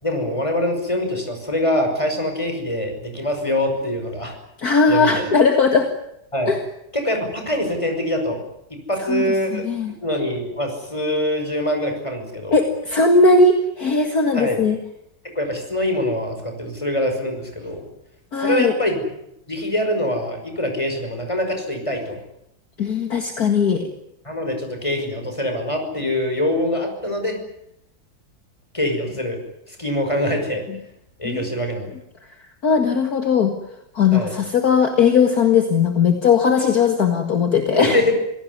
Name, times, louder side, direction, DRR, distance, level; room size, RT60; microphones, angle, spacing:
voice 1, 0.0-4.4 4.9-5.3 6.3-6.5 6.9-8.4 8.7-9.6 10.0-12.6 14.3-14.6 15.2-17.8 18.4-19.1 19.5-22.2 24.2-27.4 28.7-29.4 29.7-30.6 31.2-31.9 34.1-34.3 37.8-38.1, left 1 dB, 15° left, 5 dB, 5.8 m, -24 dB
voice 2, 4.6-5.9 6.5-6.6 9.1-9.3 9.5-9.9 12.5-14.8 18.3-18.7 22.8-23.9 31.2-31.5 32.6-33.5 34.0-38.0, left 4 dB, 50° left, 5 dB, 2.3 m, -18 dB
26.5 x 17.5 x 9.7 m, 0.80 s
omnidirectional pair, 2.1 m